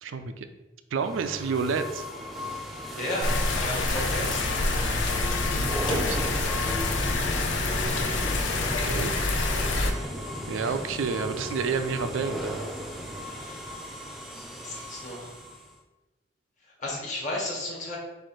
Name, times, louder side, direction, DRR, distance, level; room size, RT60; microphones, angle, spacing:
voice 1, 0.0-0.5 0.9-2.0 5.9-6.2 8.8-9.1 10.5-12.7, right 5 dB, 85° right, 9 dB, 0.4 m, -29 dB
sound 1, 1.0-15.8, equal, ahead, 0.4 m, -36 dB
voice 2, 2.9-4.6 6.6-6.8 10.6-10.7 13.2-14.3 14.6-15.3 16.6-18.0, left 1 dB, 40° left, -3 dB, 1.3 m, -35 dB
sound 2, 3.2-9.9, left 2 dB, 70° left, 0.5 m, -27 dB
4.6 x 2.5 x 4.4 m, 1.1 s
head